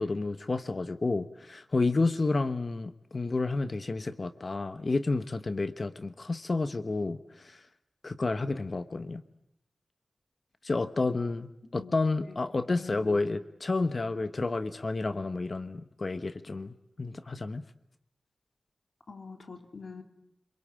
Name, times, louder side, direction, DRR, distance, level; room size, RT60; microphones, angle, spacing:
voice 1, 0.0-7.2 7.4-7.6 8.0-9.2 10.6-17.6, left 3 dB, 50° left, 11 dB, 1.1 m, -30 dB
voice 2, 11.6-12.4 12.8-13.2 19.1-20.0, left 4 dB, 70° left, 5 dB, 3.4 m, -45 dB
27.0 x 22.5 x 8.9 m, 0.81 s
wide cardioid pair, 70°, 0 cm